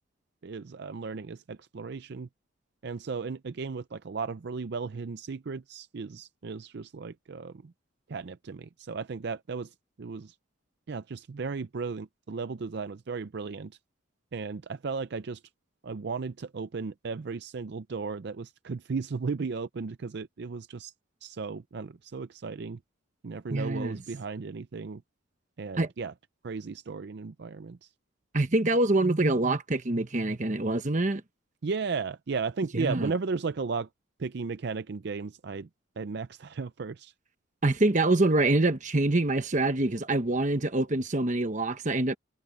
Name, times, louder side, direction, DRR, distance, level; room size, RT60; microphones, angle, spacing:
voice 1, 0.4-2.3 2.8-7.7 8.1-10.4 10.9-13.8 14.3-15.4 15.8-20.9 21.2-22.8 23.2-25.0 25.6-26.1 26.4-27.9 31.6-33.9 34.2-35.7 36.0-37.1, right 4 dB, 55° right, 0.5 m, -35 dB
voice 2, 23.5-24.0 25.8-25.9 28.3-31.2 32.7-33.1 37.6-42.2, right 2 dB, 40° right, 1.1 m, -25 dB
head